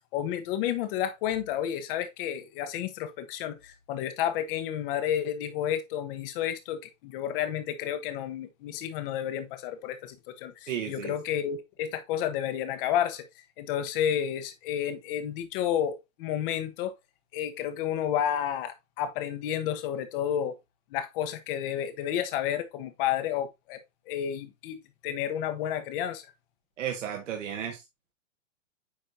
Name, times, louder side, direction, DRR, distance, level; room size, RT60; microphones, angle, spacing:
voice 1, 0.0-13.3 13.6-16.9 17.3-20.6 20.9-23.8 24.1-26.3, left 10 dB, 45° left, 1.3 m, -31 dB
voice 2, 10.7-11.1 26.8-27.8, right 9 dB, 70° right, 1.6 m, -33 dB
8.8 x 5.2 x 2.7 m
hypercardioid pair, 125°, 39 cm